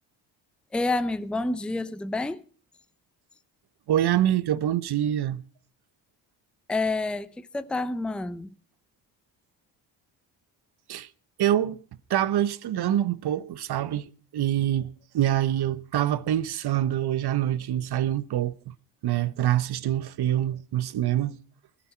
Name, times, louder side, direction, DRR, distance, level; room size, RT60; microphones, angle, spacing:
voice 1, 0.7-2.4 6.7-8.5, left 2 dB, ahead, 0.7 m, -28 dB
voice 2, 3.9-5.4 10.9-11.1 11.4-11.8 12.1-18.7 19.0-21.4, right 12 dB, 50° right, 1.0 m, -25 dB
19.5 x 11.5 x 4.4 m
hypercardioid pair, 60°, 49 cm